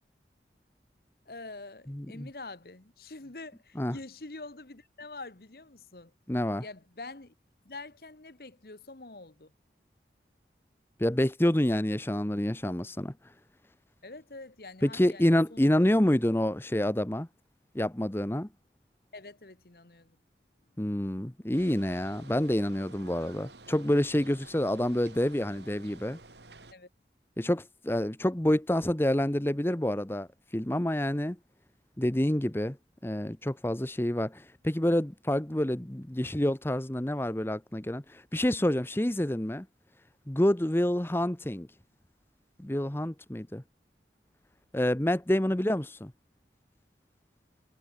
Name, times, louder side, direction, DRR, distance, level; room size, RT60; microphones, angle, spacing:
voice 1, 1.3-6.1 6.6-7.3 7.6-9.5 14.0-15.7 19.1-20.2 26.7-26.9, left 3 dB, 55° left, 1.3 m, -45 dB
voice 2, 1.9-2.3 3.8-4.0 6.3-6.6 11.0-13.1 14.8-17.3 17.7-18.5 20.8-26.2 27.4-31.4 32.0-32.8 33.0-39.7 40.3-41.7 42.6-43.6 44.7-46.1, left 1 dB, 15° left, 0.8 m, -28 dB
sound 1, 21.5-26.7, right 3 dB, 80° right, 4.3 m, -52 dB
head